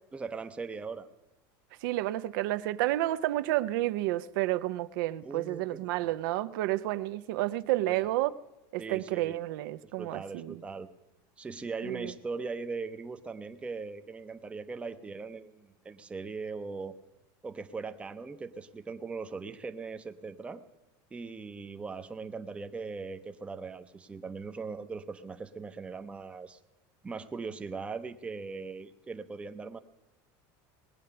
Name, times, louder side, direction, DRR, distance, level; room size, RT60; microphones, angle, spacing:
voice 1, 0.1-1.1 5.2-6.0 7.9-8.1 8.8-9.4 9.8-10.9 11.4-17.0 17.4-20.6 21.1-26.6 27.0-29.8, right 4 dB, 10° right, 0.5 m, -40 dB
voice 2, 1.8-8.3 8.7-10.6 11.8-12.1, right 16 dB, 75° right, 0.5 m, -30 dB
19.0 x 8.5 x 6.7 m
supercardioid pair, 155°, 11 cm